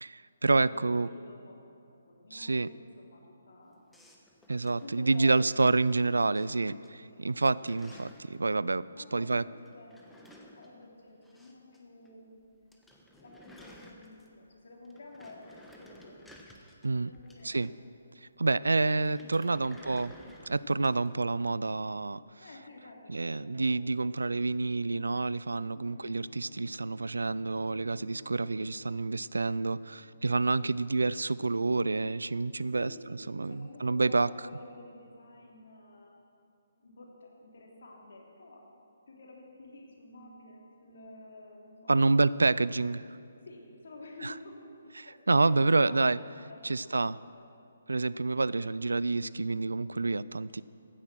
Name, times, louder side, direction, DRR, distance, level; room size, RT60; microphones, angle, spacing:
voice 1, 0.0-1.1 2.3-2.7 4.5-9.5 16.8-17.1 17.4-17.7 18.4-20.1 20.5-22.6 23.1-34.3 41.9-43.0 44.2-44.4 44.9-46.2 46.6-47.2 47.9-50.6, right 3 dB, 85° right, 18 dB, 0.4 m, -28 dB
voice 2, 0.6-1.6 1.9-3.8 4.6-5.6 6.8-7.2 8.9-10.3 10.5-12.4 13.2-16.2 17.1-17.7 18.7-20.0 22.4-23.8 25.7-26.1 32.8-36.1 36.8-38.6 39.1-41.9 43.4-44.7 45.0-47.4 48.2-48.7, left 2 dB, 65° left, -1 dB, 3.3 m, -51 dB
sound 1, 3.9-6.0 6.3-6.9 7.2-8.4 9.6-11.8 12.0-12.1 12.4-12.5 12.7-14.5 14.8-17.9 19.0-21.1, left 1 dB, 5° left, 1.2 m, -55 dB
Bowed string instrument, 25.7-31.2, right 1 dB, 40° right, 2.1 m, -58 dB
15.5 x 9.9 x 6.2 m, 2.6 s
figure-of-eight pair, 145°, 0 cm